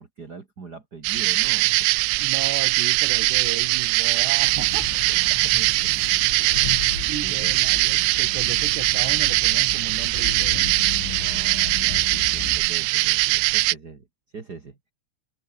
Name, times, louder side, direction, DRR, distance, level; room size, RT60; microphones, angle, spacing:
voice 1, 0.0-1.9 5.3-6.7 7.2-7.6 11.2-14.1 14.3-14.8, right 5 dB, 40° right, 1.5 m, -42 dB
sound 1, 1.0-13.7, right 24 dB, 85° right, 3.3 m, -21 dB
voice 2, 2.2-5.0 7.0-10.9, right 11 dB, 65° right, 3.8 m, -35 dB
sound 2, 4.4-12.6, left 7 dB, 70° left, 6.7 m, -35 dB
omnidirectional pair, 5.8 m